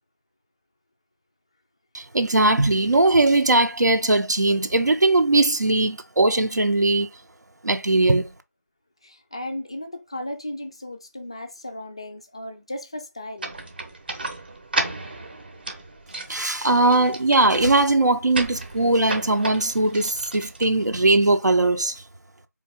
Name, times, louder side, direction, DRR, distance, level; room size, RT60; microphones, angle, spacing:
voice 1, 1.9-7.1 7.6-8.3 16.3-21.9, right 2 dB, 75° right, 0.7 m, -20 dB
voice 2, 9.0-13.5, left 1 dB, 20° left, 0.3 m, -35 dB
sound 1, 13.4-21.2, right 2 dB, 35° right, 0.7 m, -34 dB
4.1 x 2.8 x 3.5 m
figure-of-eight pair, 165°, 9 cm